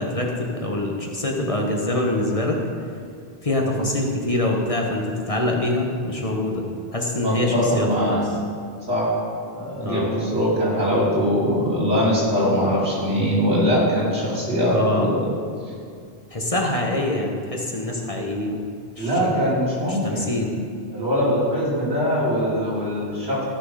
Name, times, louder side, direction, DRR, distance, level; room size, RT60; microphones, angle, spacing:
voice 1, 0.0-2.6 3.4-6.6 6.9-8.2 9.8-10.1 14.7-15.1 16.3-18.6 19.0-19.4 19.9-20.5, left 1 dB, 35° left, 0 dB, 1.2 m, -24 dB
voice 2, 7.2-8.2 8.9-9.2 9.5-15.3 19.0-20.4 20.9-23.4, equal, 85° right, -7 dB, 3.3 m, -22 dB
14.5 x 6.2 x 4.9 m, 2.2 s
omnidirectional pair, 1.1 m